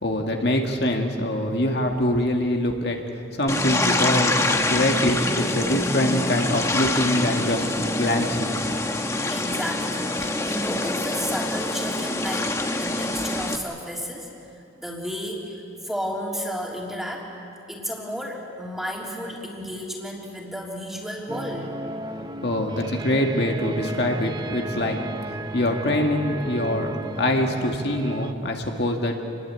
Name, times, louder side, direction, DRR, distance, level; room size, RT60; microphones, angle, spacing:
voice 1, 0.0-3.0 3.3-8.6 22.4-25.0 25.3-29.2, left 1 dB, 55° left, 2 dB, 2.0 m, -24 dB
sound 1, 3.5-13.6, left 2 dB, 15° left, 1.2 m, -25 dB
voice 2, 9.3-14.3 14.8-17.3 17.7-21.7, equal, ahead, -2 dB, 3.4 m, -33 dB
sound 2, 21.3-28.3, right 2 dB, 20° right, 0.7 m, -33 dB
28.5 x 21.5 x 8.4 m, 2.8 s
head